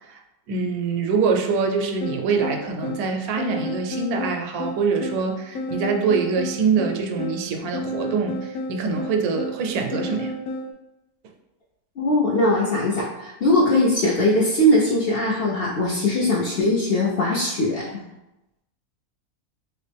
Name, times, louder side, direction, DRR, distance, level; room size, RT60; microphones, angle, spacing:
voice 1, 0.5-10.4, right 5 dB, 85° right, 4 dB, 1.1 m, -24 dB
sound 1, 2.0-10.7, left 1 dB, 75° left, 1.1 m, -32 dB
voice 2, 12.0-18.1, left 1 dB, 60° left, -5 dB, 0.6 m, -20 dB
3.0 x 3.0 x 3.3 m, 0.95 s
omnidirectional pair, 1.5 m